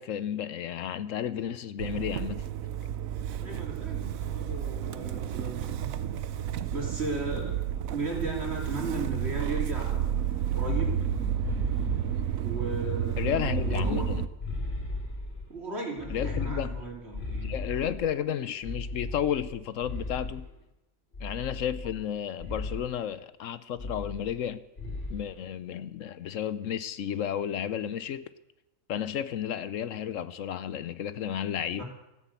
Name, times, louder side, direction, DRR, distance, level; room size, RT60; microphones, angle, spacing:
voice 1, 0.0-2.5 13.2-14.2 16.1-16.7 17.4-20.5 21.2-24.6 25.1-28.3 28.9-31.8, left 9 dB, 70° left, 1.0 m, -32 dB
Motor vehicle (road) / Engine starting, 1.8-14.3, right 10 dB, 85° right, 1.1 m, -31 dB
voice 2, 3.4-6.0 6.7-7.6 7.9-10.2 10.5-11.0 12.3-14.0 15.5-17.5 31.8-31.9, right 2 dB, 50° right, 3.3 m, -36 dB
sound 1, 10.1-12.6 13.1-15.5 16.0-18.1 18.6-20.5 21.1-22.1 22.4-22.9 23.8-24.5 24.8-25.2, left 2 dB, 50° left, 4.0 m, -36 dB
14.0 x 10.0 x 8.3 m
omnidirectional pair, 1.4 m